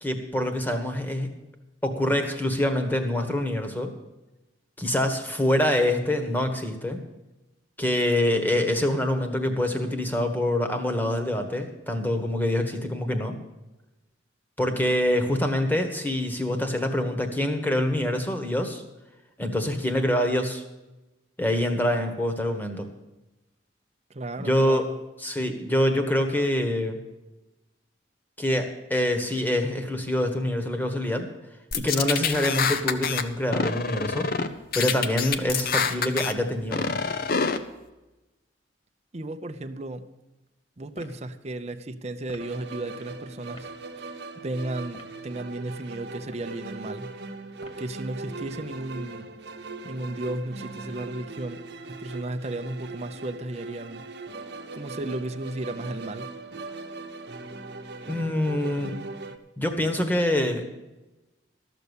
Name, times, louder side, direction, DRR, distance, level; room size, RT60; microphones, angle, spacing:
voice 1, 0.0-1.3 1.8-3.9 4.8-7.0 7.8-13.3 14.6-18.8 19.4-20.6 21.4-22.9 24.4-24.8 25.2-27.0 28.4-31.3 31.7-34.3 34.7-37.0 58.0-59.0 59.6-60.6, left 1 dB, 10° left, 6 dB, 1.3 m, -25 dB
voice 2, 24.1-25.0 39.1-40.1 40.8-43.7 44.0-44.1 44.4-47.2 47.8-49.3 49.8-51.6 51.9-54.1 54.7-56.3, right 2 dB, 35° right, 8 dB, 0.7 m, -34 dB
sound 1, 31.7-33.2 33.5-34.5 34.7-36.3 36.7-37.6, left 5 dB, 55° left, 0.7 m, -26 dB
sound 2, 40.9-41.2 42.3-42.5 43.5-43.7 44.8-45.2 46.2-46.6 47.6-47.9, equal, 35° left, 1.8 m, -47 dB
sound 3, 42.4-59.4, right 3 dB, 60° right, 1.0 m, -40 dB
13.0 x 6.9 x 8.1 m, 1.0 s
head